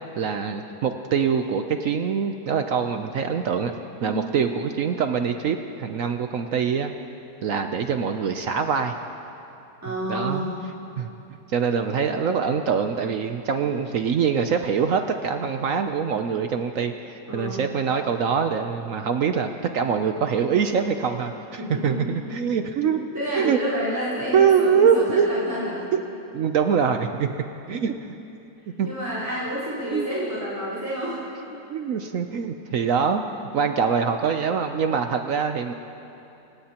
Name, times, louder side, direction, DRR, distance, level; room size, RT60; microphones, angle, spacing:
voice 1, 0.2-3.7 4.0-6.9 7.4-8.9 10.1-10.4 11.0-11.1 11.5-23.6 24.3-25.3 25.9-26.0 26.3-27.3 27.7-27.9 28.8-28.9 29.9-30.1 31.7-33.2 33.5-35.7, right 6 dB, 65° right, 6 dB, 0.8 m, -24 dB
voice 2, 9.8-10.6 17.3-17.6 21.6-22.2 22.8-25.8 28.8-31.6, equal, 10° right, -11 dB, 4.2 m, -29 dB
27.0 x 17.0 x 2.9 m, 2.8 s
omnidirectional pair, 2.0 m